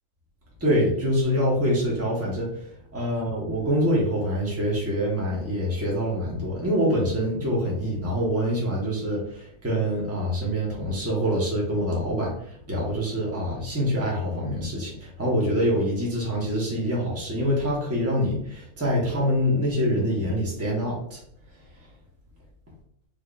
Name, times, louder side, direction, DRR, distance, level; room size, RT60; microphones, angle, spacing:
voice 1, 0.6-2.7 2.9-21.2, equal, 10° right, -5 dB, 0.9 m, -25 dB
3.4 x 3.3 x 2.5 m, 0.68 s
omnidirectional pair, 1.7 m